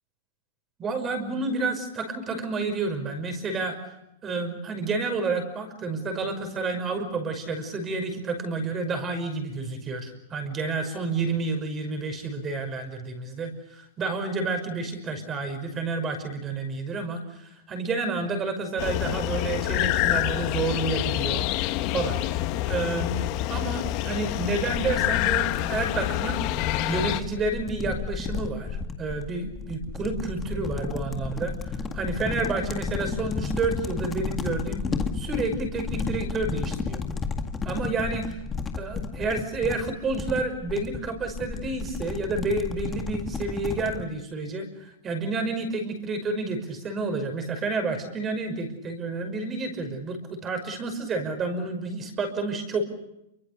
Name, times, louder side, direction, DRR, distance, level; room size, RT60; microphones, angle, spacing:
voice 1, 0.8-3.8 4.2-23.2 23.5-31.5 31.9-34.8 35.1-37.0 37.6-38.4 38.8-52.8, right 3 dB, 20° right, 7 dB, 5.7 m, -30 dB
sound 1, 18.8-27.2, left 15 dB, 35° left, 1.5 m, -27 dB
sound 2, 24.8-44.1, left 5 dB, 15° left, 1.9 m, -33 dB
28.5 x 24.5 x 6.8 m, 0.86 s
hypercardioid pair, 155°, 0 cm